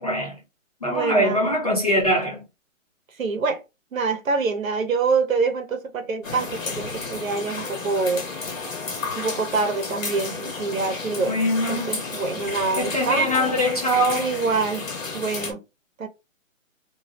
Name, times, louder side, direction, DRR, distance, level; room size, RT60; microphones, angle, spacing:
voice 1, 0.0-0.4 0.8-2.5 11.2-12.1 12.7-14.3, equal, 30° left, 0.7 m, -22 dB
voice 2, 0.9-1.4 3.2-3.6 3.9-8.3 9.2-11.4 11.7-13.6 14.2-14.9 15.1-15.6 16.0-16.1, right 4 dB, 85° right, 0.7 m, -25 dB
sound 1, 6.2-15.5, left 4 dB, 75° left, 1.0 m, -32 dB
2.4 x 2.0 x 2.9 m
hypercardioid pair, 175°, 40 cm